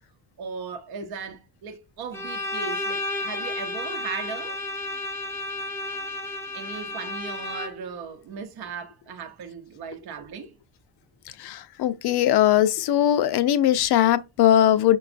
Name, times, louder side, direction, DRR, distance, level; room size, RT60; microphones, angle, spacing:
voice 1, 0.4-4.6 6.5-10.6, right 6 dB, 55° right, 0.7 m, -37 dB
Bowed string instrument, 2.1-8.0, left 2 dB, 5° left, 0.4 m, -32 dB
voice 2, 11.3-15.0, left 11 dB, 60° left, 0.5 m, -20 dB
5.9 x 2.3 x 2.4 m
cardioid pair, 115°, 46 cm